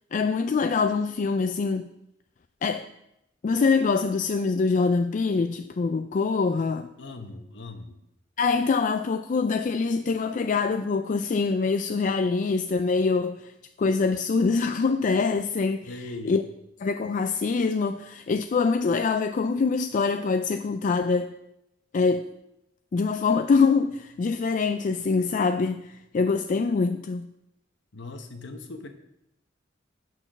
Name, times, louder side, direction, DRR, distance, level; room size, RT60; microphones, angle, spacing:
voice 1, 0.1-1.9 2.6-2.9 3.4-6.9 8.4-13.5 13.8-15.9 16.3-16.4 16.8-21.3 21.9-22.3 22.9-27.3, left 4 dB, 45° left, 0.4 m, -24 dB
voice 2, 7.0-8.0 15.9-16.4 27.9-28.9, left 2 dB, 70° left, 1.1 m, -39 dB
9.1 x 6.0 x 6.0 m
head